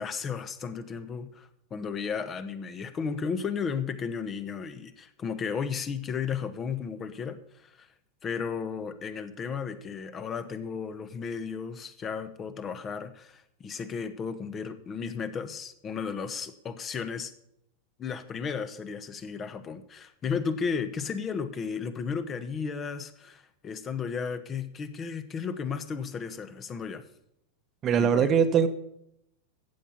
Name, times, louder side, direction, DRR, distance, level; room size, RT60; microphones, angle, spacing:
voice 1, 0.0-7.9 8.2-17.3 18.0-27.0 28.0-28.4, left 6 dB, 25° left, 1.2 m, -34 dB
voice 2, 27.8-28.7, right 7 dB, 30° right, 1.1 m, -21 dB
14.5 x 8.6 x 5.6 m
figure-of-eight pair, 90°, 0 cm